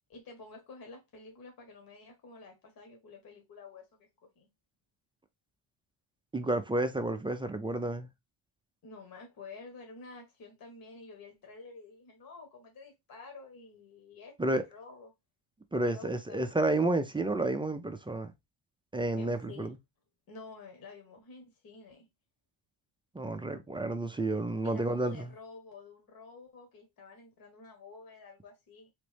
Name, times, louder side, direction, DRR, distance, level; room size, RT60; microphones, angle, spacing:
voice 1, 0.1-4.1 4.4-4.5 8.8-15.1 15.8-16.5 19.1-19.7 20.3-22.1 24.6-28.9, left 3 dB, 50° left, 1.3 m, -50 dB
voice 2, 6.3-8.1 14.4-14.6 15.7-18.3 18.9-19.8 23.1-25.3, right 2 dB, 10° right, 0.3 m, -31 dB
4.0 x 3.5 x 3.3 m
cardioid pair, 150°, 46 cm